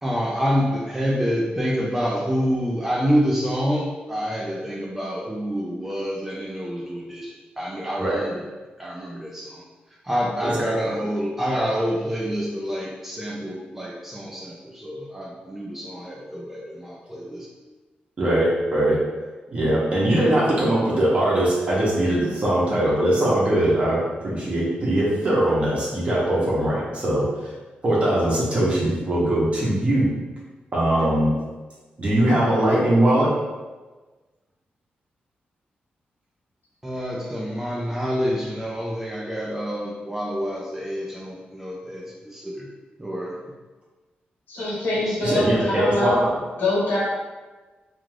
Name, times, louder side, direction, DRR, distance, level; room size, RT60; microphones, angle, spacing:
voice 1, 0.0-8.4 8.8-9.6 10.0-17.5 36.8-42.7 43.0-43.6 44.9-45.4, equal, 10° right, -3 dB, 0.3 m, -27 dB
voice 2, 18.2-19.0 19.5-27.5 27.8-30.1 30.7-31.3 32.0-33.3 45.2-46.3, right 1 dB, 35° right, -6 dB, 0.8 m, -21 dB
voice 3, 44.5-46.2 46.6-47.0, left 2 dB, 75° left, -6 dB, 1.1 m, -23 dB
2.4 x 2.3 x 3.2 m, 1.2 s
wide cardioid pair, 150°, 3 cm